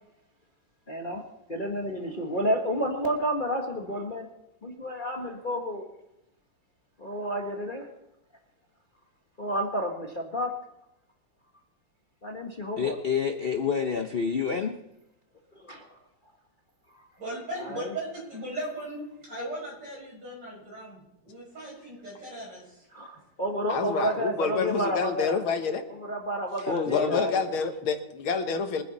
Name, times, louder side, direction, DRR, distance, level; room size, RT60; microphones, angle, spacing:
voice 1, 0.9-1.2 1.5-4.3 4.6-5.8 7.0-7.9 9.4-10.5 12.2-13.0 15.5-16.0 16.9-17.0 17.6-17.9 22.9-25.4 26.0-27.6, equal, 25° left, 1 dB, 1.4 m, -30 dB
voice 2, 12.8-14.7 26.7-27.3, left 6 dB, 65° left, 5 dB, 0.5 m, -28 dB
voice 3, 17.2-22.9, right 1 dB, 55° right, -4 dB, 7.6 m, -38 dB
voice 4, 23.7-25.8 26.6-28.8, left 5 dB, 85° left, 7 dB, 2.1 m, -28 dB
24.0 x 10.0 x 4.2 m, 0.88 s
omnidirectional pair, 2.2 m